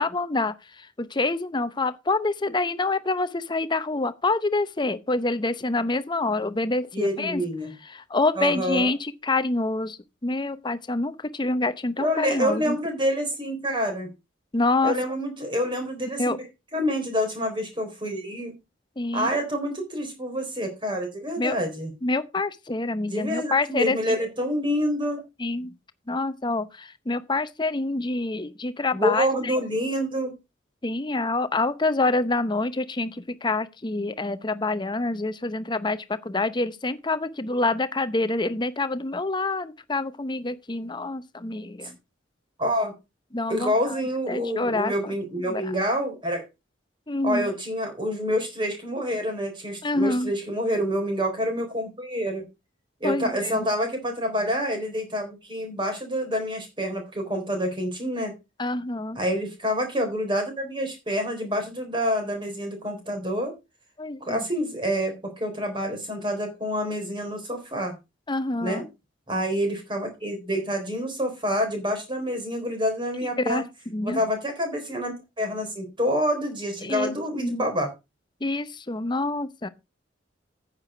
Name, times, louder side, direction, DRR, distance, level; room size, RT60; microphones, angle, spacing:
voice 1, 0.0-7.4 7.8-12.8 14.5-14.9 16.2-16.4 19.0-19.3 21.4-21.6 22.0-24.1 25.4-25.7 26.1-29.6 30.8-42.0 43.3-44.0 44.3-45.7 47.1-47.5 49.8-50.3 53.0-53.7 58.6-59.2 64.0-64.4 68.3-68.8 73.4-74.2 76.8-77.7 78.4-79.7, left 2 dB, 25° left, 0.7 m, -27 dB
voice 2, 6.9-7.7 8.4-8.9 12.0-14.1 14.8-16.3 16.7-18.5 19.1-21.9 23.1-25.2 28.9-30.3 42.6-42.9 43.5-46.4 47.2-52.4 53.0-58.3 59.2-63.5 64.2-67.9 68.6-68.8 69.3-73.6 74.0-77.9, equal, 25° right, 4.0 m, -27 dB
9.6 x 7.5 x 4.9 m
head